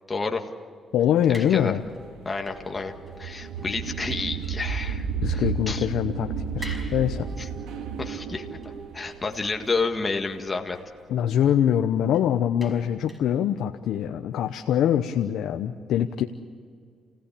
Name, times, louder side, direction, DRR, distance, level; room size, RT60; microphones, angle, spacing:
voice 1, 0.1-0.4 1.3-1.7 2.3-2.9 3.2-5.9 7.4-7.5 8.0-8.5 8.9-10.8, left 4 dB, 25° left, 3 dB, 1.9 m, -30 dB
voice 2, 0.9-1.8 5.2-6.3 6.5-7.3 11.1-16.2, left 10 dB, 80° left, 6 dB, 0.9 m, -24 dB
sound 1, 1.3-1.7 2.0-4.6 5.4-5.5 6.6-9.3 10.7-10.9 12.1-12.3 12.6-13.2, right 1 dB, 10° right, 5.8 m, -44 dB
sound 2, 1.4-10.4, right 5 dB, 90° right, 1.9 m, -32 dB
29.5 x 17.0 x 8.6 m, 2.2 s
cardioid pair, 90°, 0 cm